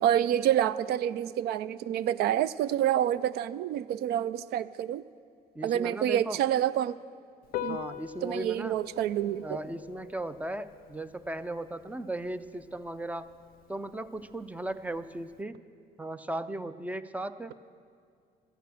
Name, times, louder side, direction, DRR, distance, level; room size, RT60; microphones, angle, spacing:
voice 1, 0.0-5.0 5.6-7.0 7.6-7.8 8.2-9.6, right 11 dB, 70° right, 18 dB, 0.4 m, -28 dB
voice 2, 5.5-6.4 7.7-8.8 9.4-13.3 13.7-15.6 16.0-17.7, right 1 dB, 10° right, 13 dB, 0.4 m, -37 dB
Piano, 7.4-15.4, left 12 dB, 60° left, 0.4 m, -44 dB
13.0 x 8.9 x 7.8 m, 2.3 s
cardioid pair, 110°, 17 cm